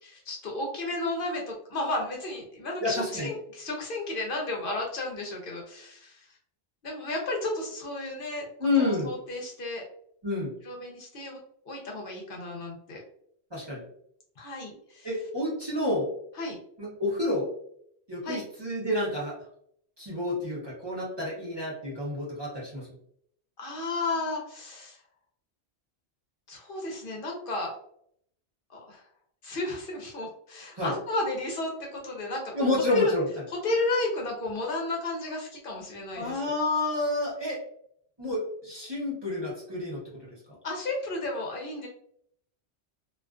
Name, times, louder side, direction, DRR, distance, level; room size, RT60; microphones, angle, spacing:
voice 1, 0.0-6.3 6.8-8.5 8.8-9.8 10.6-11.4 11.7-13.0 14.4-15.1 16.4-16.6 18.2-18.4 23.6-25.0 26.5-27.8 28.7-29.0 29.4-33.1 33.6-36.5 40.6-41.9, left 2 dB, 60° left, 0 dB, 0.7 m, -33 dB
voice 2, 2.8-3.3 8.6-9.1 10.2-10.5 13.5-13.8 15.0-16.1 16.8-17.5 18.1-19.4 20.0-22.9 30.8-30.9 32.5-33.3 36.2-37.6 38.2-40.0, left 2 dB, 30° right, -6 dB, 0.7 m, -29 dB
2.4 x 2.3 x 2.3 m, 0.67 s
omnidirectional pair, 1.1 m